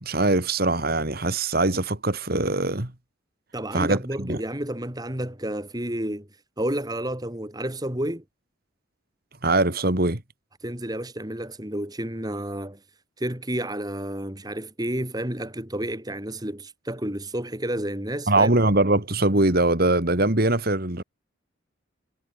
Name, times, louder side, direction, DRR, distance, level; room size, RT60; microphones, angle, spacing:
voice 1, 0.0-2.9 3.7-4.4 9.4-10.2 18.3-21.0, right 2 dB, 50° right, 2.5 m, -22 dB
voice 2, 3.5-6.3 6.6-8.2 10.6-12.8 13.2-18.6, right 1 dB, 20° right, 2.9 m, -30 dB
head